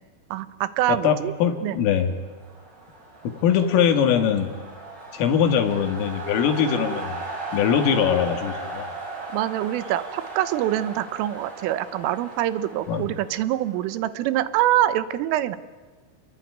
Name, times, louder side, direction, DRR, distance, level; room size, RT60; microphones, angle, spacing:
voice 1, 0.3-1.3 1.6-1.8 9.3-15.6, right 13 dB, 80° right, 14 dB, 3.6 m, -25 dB
voice 2, 0.9-2.1 3.2-4.5 5.1-7.2 7.5-8.9 12.9-13.0, left 8 dB, 85° left, 7 dB, 4.7 m, -22 dB
sound 1, 2.1-14.1, right 3 dB, 45° right, 8.2 m, -37 dB
29.5 x 21.0 x 9.5 m, 1.4 s
omnidirectional pair, 5.7 m